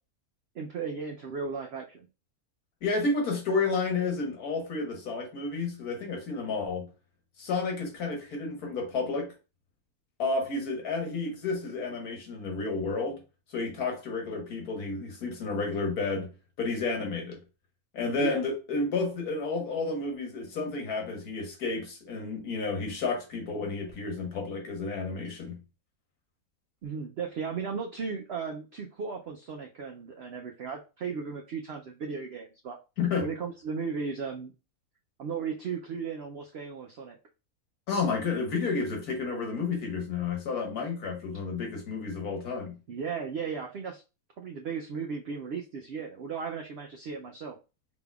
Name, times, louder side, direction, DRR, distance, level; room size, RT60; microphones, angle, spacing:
voice 1, 0.5-2.1 18.2-18.4 26.8-32.8 33.2-34.5 35.2-37.2 42.9-44.0 44.4-47.6, right 5 dB, 65° right, 0.6 m, -36 dB
voice 2, 2.8-6.9 7.4-9.3 10.2-13.2 13.5-16.3 16.6-17.4 17.9-25.6 33.0-33.3 37.9-42.8, left 4 dB, 80° left, 1.7 m, -31 dB
4.9 x 3.6 x 2.3 m
omnidirectional pair, 1.6 m